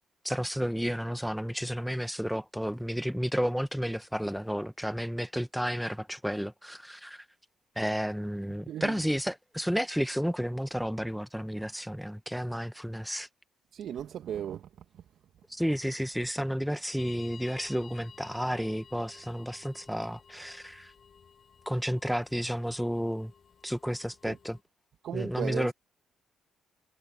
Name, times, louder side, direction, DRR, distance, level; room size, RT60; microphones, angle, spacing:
voice 1, 0.2-7.2 7.8-13.3 15.5-20.9 21.6-23.3 23.6-24.6 25.1-25.7, equal, ahead, 1.3 m, -32 dB
voice 2, 8.7-9.0 13.7-15.0 24.3-24.4 25.0-25.7, right 10 dB, 65° right, 1.9 m, -36 dB
sound 1, 17.0-24.6, left 6 dB, 50° left, 7.4 m, -54 dB
hypercardioid pair, 50°, 0 cm